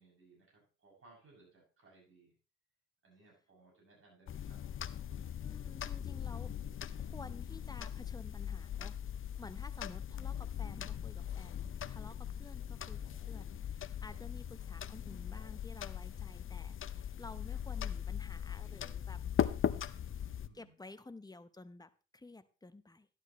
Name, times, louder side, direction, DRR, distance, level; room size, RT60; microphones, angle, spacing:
voice 1, 0.0-2.3 3.0-4.6 12.8-13.5 20.0-20.7, right 3 dB, 45° right, -2 dB, 7.2 m, -63 dB
sound 1, 4.3-20.5, left 9 dB, 45° left, 0.6 m, -39 dB
voice 2, 5.4-6.5 7.0-8.9 9.4-13.0 13.3-19.2 20.5-23.1, left 2 dB, 15° left, 11 dB, 0.9 m, -52 dB
13.0 x 11.5 x 3.1 m, 0.33 s
cardioid pair, 90°, 30 cm